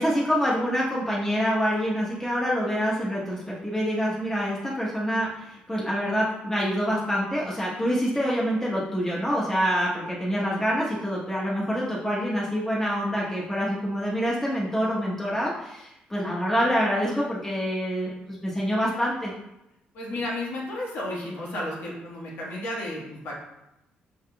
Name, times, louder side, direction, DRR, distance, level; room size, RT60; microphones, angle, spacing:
voice 1, 0.0-19.3, equal, 10° left, -6 dB, 1.0 m, -26 dB
voice 2, 19.9-23.3, left 1 dB, 70° left, -3 dB, 1.4 m, -32 dB
5.6 x 3.5 x 2.3 m, 0.90 s
supercardioid pair, 70°, 4 cm